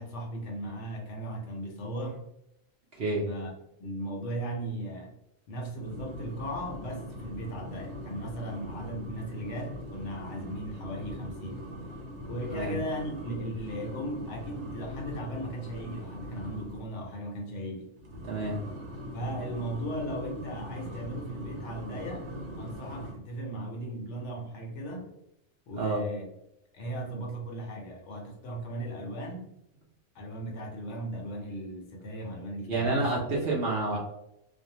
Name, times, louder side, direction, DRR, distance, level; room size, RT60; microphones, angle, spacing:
voice 1, 0.0-2.2 3.3-3.5 3.8-5.1 5.5-11.6 12.2-17.9 19.1-22.3 22.6-25.2 25.7-26.3 26.7-29.5 30.1-33.2 33.9-34.0, right 1 dB, 65° left, 0 dB, 0.8 m, -37 dB
sound 1, 5.8-16.9 18.0-23.1, left 1 dB, 80° right, 1.1 m, -41 dB
voice 2, 18.3-18.6 25.8-26.0 32.7-34.0, right 3 dB, 55° right, -3 dB, 0.7 m, -29 dB
2.5 x 2.1 x 2.7 m, 0.82 s
omnidirectional pair, 1.4 m